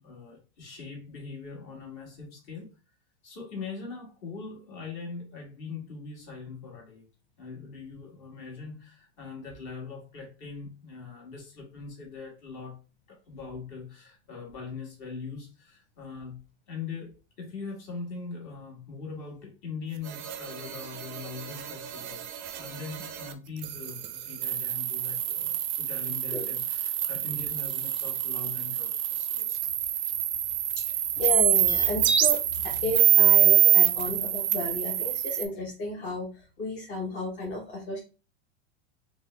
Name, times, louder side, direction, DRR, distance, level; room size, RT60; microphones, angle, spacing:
voice 1, 0.0-2.7 3.2-7.1 7.4-12.8 13.1-16.4 16.7-29.6, left 4 dB, 45° left, 1.4 m, -41 dB
sound 1, 20.1-23.3 23.6-35.5, right 10 dB, 45° right, 0.4 m, -26 dB
voice 2, 30.7-36.3 36.6-38.0, left 1 dB, 25° left, 0.6 m, -33 dB
3.4 x 2.0 x 3.1 m
supercardioid pair, 165°, 33 cm